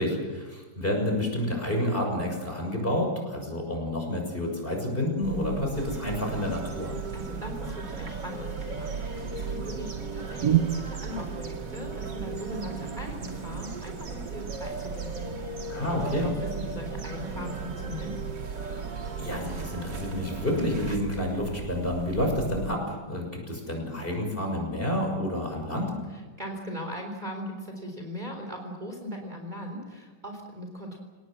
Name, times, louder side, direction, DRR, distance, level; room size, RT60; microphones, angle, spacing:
voice 1, 0.0-6.9 15.7-16.3 19.2-25.9, left 1 dB, 30° left, 1 dB, 6.6 m, -29 dB
sound 1, 5.2-22.8, right 9 dB, 60° right, 1.3 m, -35 dB
sound 2, 5.7-21.0, right 2 dB, 75° right, 3.1 m, -39 dB
voice 2, 7.1-15.4 16.2-18.1 26.1-31.0, equal, 25° right, 3 dB, 3.9 m, -39 dB
29.0 x 18.5 x 7.6 m, 1.3 s
omnidirectional pair, 1.9 m